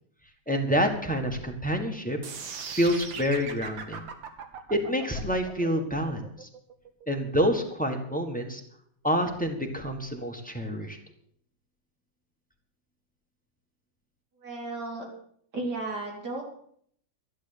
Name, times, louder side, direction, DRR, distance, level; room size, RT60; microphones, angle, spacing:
voice 1, 0.5-2.2 2.7-4.1 4.7-6.5 7.1-8.6 9.0-11.0, equal, 5° left, 4 dB, 1.3 m, -27 dB
sound 1, 2.2-8.3, right 6 dB, 70° right, 2.0 m, -40 dB
voice 2, 14.4-15.1 15.5-16.4, right 2 dB, 55° right, 0 dB, 3.7 m, -34 dB
12.0 x 11.0 x 6.7 m, 0.64 s
omnidirectional pair, 2.2 m